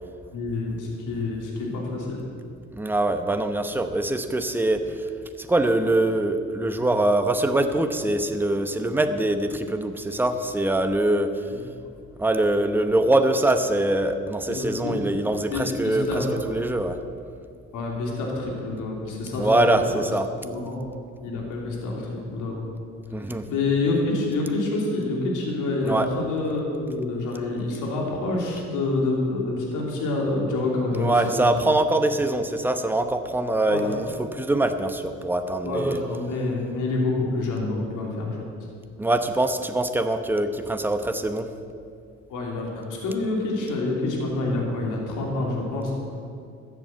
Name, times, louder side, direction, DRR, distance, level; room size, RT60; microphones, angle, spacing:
voice 1, 0.3-2.2 11.5-11.6 14.5-15.0 15.5-16.3 17.7-20.0 20.4-20.8 21.2-22.7 23.5-31.5 33.7-33.9 35.6-38.4 42.3-45.9, left 2 dB, 85° left, -1 dB, 2.9 m, -27 dB
voice 2, 2.7-5.1 5.4-11.4 12.2-17.0 19.4-20.3 23.1-23.5 25.8-26.1 30.9-36.0 39.0-41.5, right 1 dB, 5° right, 7 dB, 0.9 m, -23 dB
13.5 x 7.5 x 7.7 m, 2.3 s
cardioid pair, 90°, 30 cm